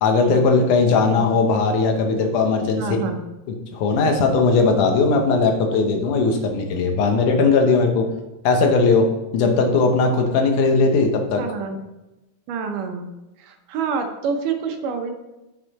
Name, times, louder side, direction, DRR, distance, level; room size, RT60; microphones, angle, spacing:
voice 1, 0.0-2.8 3.7-8.1 8.4-9.1 9.3-11.4, left 4 dB, 75° left, 4 dB, 2.3 m, -18 dB
voice 2, 2.8-3.2 5.8-5.9 9.6-9.7 11.4-11.8 12.5-13.1 13.4-15.1, right 5 dB, 80° right, 5 dB, 2.4 m, -27 dB
7.8 x 5.5 x 4.0 m, 0.99 s
omnidirectional pair, 3.8 m